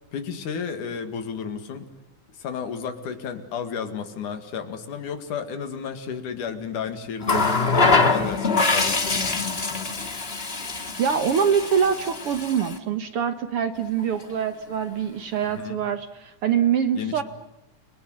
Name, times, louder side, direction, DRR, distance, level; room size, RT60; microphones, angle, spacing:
voice 1, 0.1-1.9 2.4-10.0 15.4-15.8 17.0-17.2, left 7 dB, 80° left, 8 dB, 3.6 m, -32 dB
Water tap faucet, 7.2-12.8 14.0-14.2, left 3 dB, 25° left, 1.8 m, -24 dB
voice 2, 11.0-17.2, right 7 dB, 60° right, 9 dB, 1.8 m, -24 dB
29.5 x 22.0 x 8.1 m, 0.92 s
omnidirectional pair, 3.5 m